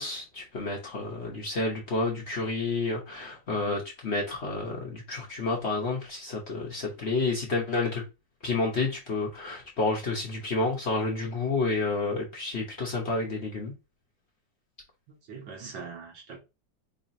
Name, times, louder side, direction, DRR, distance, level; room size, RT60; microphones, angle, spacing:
voice 1, 0.0-8.0 8.4-13.7, left 3 dB, 45° left, 1.0 m, -30 dB
voice 2, 15.1-16.4, right 5 dB, 80° right, 1.9 m, -42 dB
4.8 x 2.8 x 2.6 m
omnidirectional pair, 2.0 m